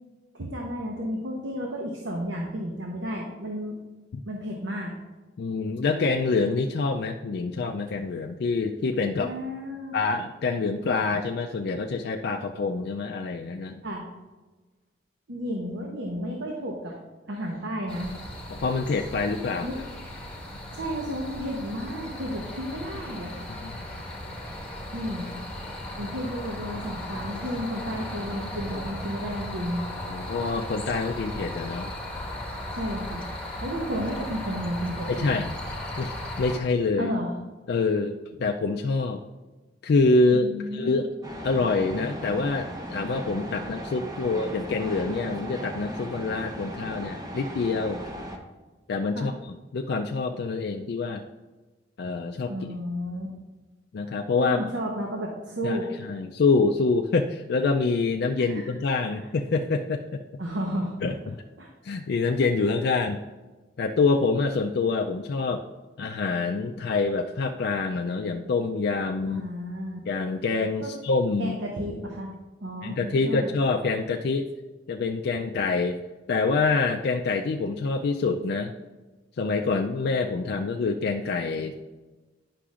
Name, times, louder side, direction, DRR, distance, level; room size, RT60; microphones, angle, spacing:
voice 1, 0.3-3.8 4.2-4.9 9.2-9.9 13.8-14.0 15.3-16.9 17.3-18.1 19.6-19.8 20.7-23.5 24.9-25.3 26.0-29.8 32.7-33.2 33.6-35.4 37.0-37.3 40.3-41.0 49.1-49.3 52.5-53.3 54.4-55.9 58.4-58.7 59.0-59.3 60.4-60.9 61.6-61.7 69.3-70.0 70.8-70.9 71.4-72.3 72.6-73.5, equal, 80° right, 0 dB, 1.0 m, -32 dB
voice 2, 5.4-9.3 9.9-13.8 18.5-19.7 23.6-23.8 30.1-31.9 35.1-35.5 36.0-37.1 37.7-39.2 39.8-41.1 41.4-48.0 48.9-49.3 49.7-51.2 52.0-52.5 53.9-54.6 55.6-60.2 61.0-61.4 61.8-63.2 63.8-65.6 66.0-69.4 70.1-71.6 72.8-74.5 74.9-76.0 76.3-78.7 79.4-81.8, left 4 dB, 60° left, 2 dB, 0.4 m, -26 dB
sound 1, 17.9-36.6, left 1 dB, 5° left, 1.1 m, -36 dB
sound 2, 41.2-48.4, equal, 20° right, 0.8 m, -37 dB
9.9 x 5.8 x 2.5 m, 1.2 s
head